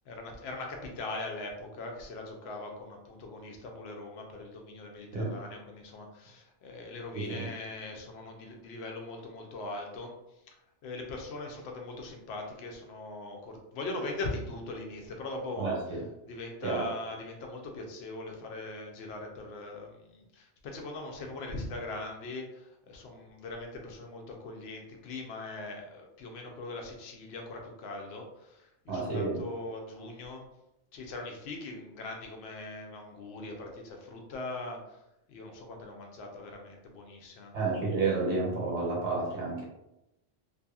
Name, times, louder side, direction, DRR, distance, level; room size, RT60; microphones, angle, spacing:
voice 1, 0.1-10.1 10.8-15.8 16.3-30.4 30.9-35.0 35.3-37.5, left 2 dB, 65° left, 2 dB, 0.8 m, -41 dB
voice 2, 7.1-7.5 15.6-16.0 16.6-16.9 28.9-29.4 37.5-39.6, right 3 dB, 70° right, -4 dB, 1.2 m, -30 dB
2.7 x 2.6 x 2.3 m, 0.90 s
omnidirectional pair, 1.2 m